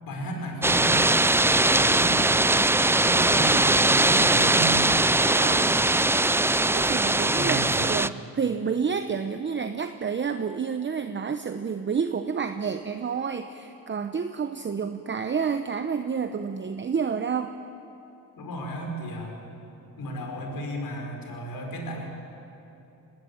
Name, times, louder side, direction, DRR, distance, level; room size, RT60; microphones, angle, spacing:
voice 1, 0.1-1.3 1.6-2.2 3.0-4.7 7.3-7.9 18.4-19.4 20.0-22.1, right 1 dB, 60° left, 2 dB, 5.7 m, -34 dB
sound 1, 0.6-8.1, right 2 dB, 5° right, 0.4 m, -21 dB
voice 2, 5.2-5.9 6.7-17.6, right 6 dB, 30° right, 8 dB, 0.9 m, -29 dB
22.0 x 19.0 x 8.9 m, 3.0 s
cardioid pair, 80°, 39 cm